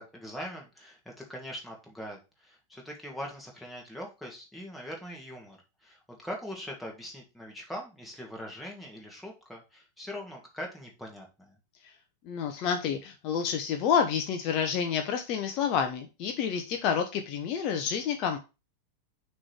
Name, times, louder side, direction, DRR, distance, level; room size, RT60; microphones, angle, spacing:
voice 1, 0.0-11.6, equal, 5° left, -1 dB, 2.1 m, -42 dB
voice 2, 12.3-18.4, left 7 dB, 40° left, 5 dB, 0.8 m, -29 dB
6.1 x 3.4 x 6.0 m, 0.29 s
figure-of-eight pair, 90°, 0 cm